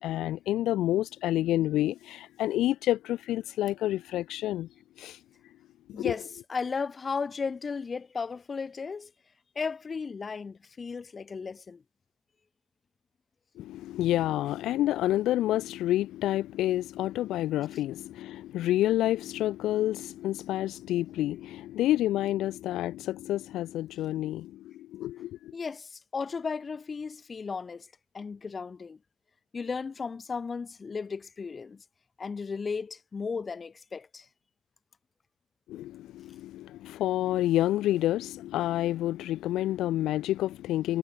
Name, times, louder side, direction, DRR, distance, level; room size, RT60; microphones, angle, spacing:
voice 1, 0.0-4.7 5.0-5.2 5.9-6.1 13.6-25.5 35.7-41.0, left 14 dB, 85° left, 1.8 m, -29 dB
voice 2, 5.9-9.1 9.6-11.8 25.5-27.9 28.1-29.0 29.5-31.8 32.2-34.3, left 5 dB, 35° left, 5.4 m, -35 dB
cardioid pair, 90°, 0 cm